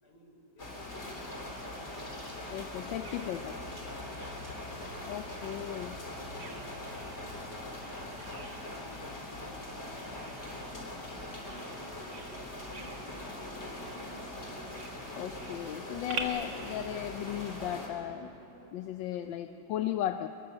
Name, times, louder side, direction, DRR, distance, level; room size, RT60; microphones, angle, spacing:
voice 1, 0.0-1.7 2.2-5.8 6.1-6.7 7.1-7.5 8.5-9.0 9.2-9.9 10.4-12.2 12.9-14.3 19.1-19.6 20.0-20.1, left 1 dB, 60° left, 1 dB, 4.7 m, -56 dB
sound 1, 0.6-17.9, left 1 dB, 35° left, 3.6 m, -42 dB
voice 2, 2.5-3.5 5.0-5.9 15.1-18.3 18.7-20.3, left 12 dB, 85° left, 8 dB, 1.4 m, -36 dB
Bird vocalization bird call bird song, 2.6-16.2, right 5 dB, 75° right, 2.4 m, -49 dB
Bowed string instrument, 11.4-18.8, right 1 dB, 35° right, 4.1 m, -52 dB
24.0 x 21.0 x 7.5 m, 2.9 s
omnidirectional pair, 2.0 m